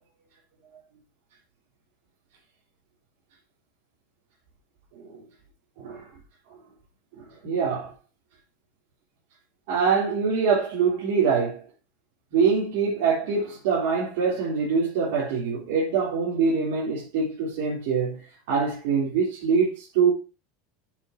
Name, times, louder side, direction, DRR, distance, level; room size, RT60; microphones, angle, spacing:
voice 1, 5.8-6.1 7.1-7.9 9.7-11.6 12.3-18.2 18.5-20.1, right 5 dB, 70° right, 3.8 m, -24 dB
10.0 x 6.8 x 3.0 m
supercardioid pair, 135°, 0 cm